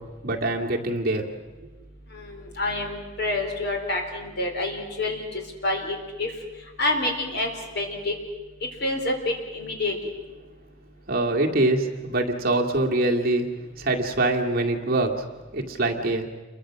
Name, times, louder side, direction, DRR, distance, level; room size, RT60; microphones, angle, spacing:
voice 1, 0.2-1.2 11.1-13.5 13.8-15.2 15.5-16.3, right 2 dB, 45° right, 1 dB, 2.1 m, -24 dB
voice 2, 2.1-6.3 6.8-7.5 7.8-8.1 8.8-9.9, left 2 dB, 50° left, 3 dB, 4.0 m, -28 dB
28.5 x 23.0 x 6.3 m, 1.2 s
head